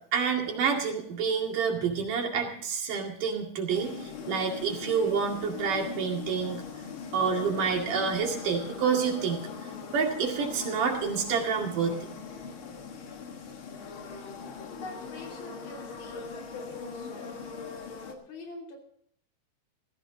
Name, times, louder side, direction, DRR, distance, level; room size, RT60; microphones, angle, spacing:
voice 1, 0.1-6.6 7.1-9.5 9.9-12.1, right 6 dB, 65° right, 1 dB, 3.7 m, -28 dB
sound 1, 3.7-18.1, left 5 dB, 50° left, 1.6 m, -41 dB
voice 2, 14.7-17.4 18.0-18.8, left 3 dB, 85° left, 2 dB, 5.1 m, -44 dB
16.0 x 14.5 x 3.9 m, 0.65 s
omnidirectional pair, 4.2 m